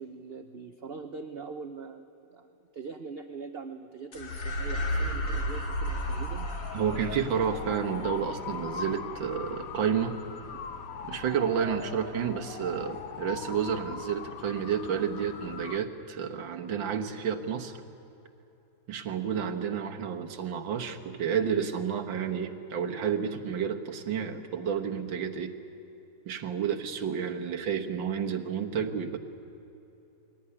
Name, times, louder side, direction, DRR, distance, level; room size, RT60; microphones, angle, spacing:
voice 1, 0.0-2.0 2.3-6.5, right 4 dB, 55° right, 7 dB, 0.6 m, -42 dB
sound 1, 4.1-12.7, equal, 75° left, 3.1 m, -36 dB
sound 2, 5.8-15.8, left 7 dB, 55° left, 1.1 m, -41 dB
voice 2, 6.7-10.2 11.1-17.8 18.9-25.5 26.3-29.2, right 7 dB, 75° right, 4 dB, 2.0 m, -30 dB
21.5 x 17.5 x 9.8 m, 2.9 s
omnidirectional pair, 2.1 m